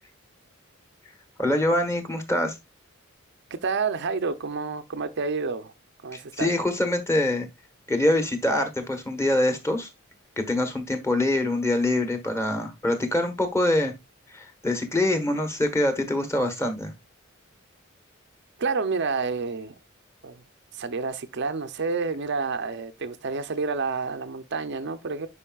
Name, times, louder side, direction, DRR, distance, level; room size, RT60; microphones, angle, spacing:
voice 1, 1.4-2.5 6.1-7.5 7.9-9.9 10.4-13.9 14.3-16.9, left 1 dB, 15° left, 1.2 m, -24 dB
voice 2, 3.5-5.7 6.0-6.5 18.6-19.7 20.2-20.4 20.7-25.3, right 4 dB, 55° right, 0.6 m, -29 dB
9.9 x 4.9 x 2.3 m
head